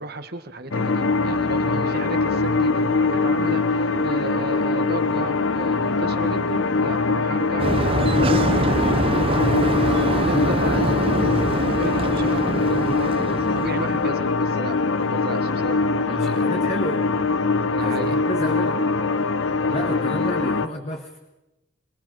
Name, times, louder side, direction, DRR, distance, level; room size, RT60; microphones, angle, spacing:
voice 1, 0.0-9.2 9.7-13.3 13.5-16.5 17.7-18.2 19.7-20.3, right 2 dB, 50° right, 8 dB, 1.8 m, -34 dB
sound 1, 0.7-20.7, left 3 dB, 75° left, 0.9 m, -22 dB
sound 2, 7.6-14.1, right 2 dB, 30° right, 0.6 m, -24 dB
voice 2, 16.1-17.0 17.8-18.8 19.7-21.2, left 1 dB, 35° left, 3 dB, 1.4 m, -31 dB
26.5 x 20.5 x 5.1 m, 0.99 s
head